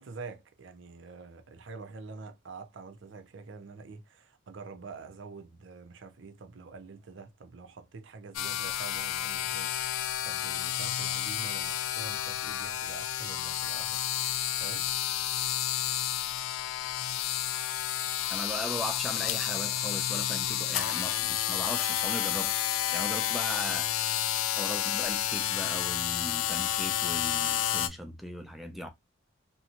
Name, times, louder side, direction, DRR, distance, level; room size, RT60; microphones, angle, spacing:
voice 1, 0.0-14.9, right 4 dB, 65° right, 0.5 m, -46 dB
sound 1, 8.3-27.9, left 12 dB, 90° left, 0.3 m, -30 dB
voice 2, 18.3-22.5 22.9-28.9, equal, ahead, 0.4 m, -38 dB
2.6 x 2.2 x 2.8 m
head